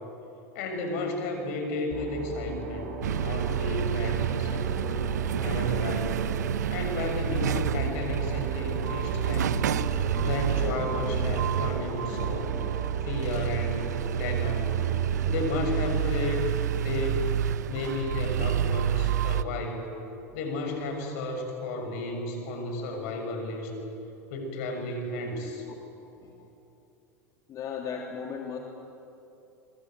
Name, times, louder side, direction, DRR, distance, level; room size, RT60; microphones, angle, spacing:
voice 1, 0.5-5.0 5.4-6.2 6.7-9.6 10.2-12.5 13.0-14.8 15.2-16.5 16.7-17.3 17.7-19.9 20.3-23.7 24.3-25.6, left 2 dB, 65° left, 4 dB, 6.7 m, -33 dB
sound 1, 1.9-15.2, right 2 dB, 60° right, 7.2 m, -37 dB
sound 2, 3.0-19.4, right 9 dB, 85° right, 0.8 m, -29 dB
voice 2, 26.0-26.5 27.5-28.6, left 6 dB, 40° left, 1 dB, 2.9 m, -37 dB
26.0 x 23.5 x 9.2 m, 2.8 s
hypercardioid pair, 95°, 9 cm